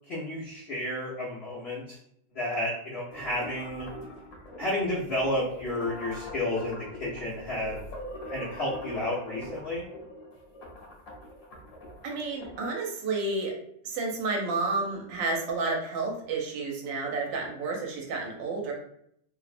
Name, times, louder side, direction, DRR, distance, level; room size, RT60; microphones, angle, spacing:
voice 1, 0.1-2.0 2.3-3.9 4.6-7.8 8.3-9.8, left 1 dB, 90° left, -7 dB, 0.5 m, -31 dB
sound 1, 3.1-12.7, left 1 dB, 65° left, 1.0 m, -42 dB
voice 2, 12.0-13.5 13.8-18.7, right 3 dB, 90° right, 0 dB, 1.3 m, -31 dB
3.0 x 2.0 x 2.4 m, 0.70 s
omnidirectional pair, 2.0 m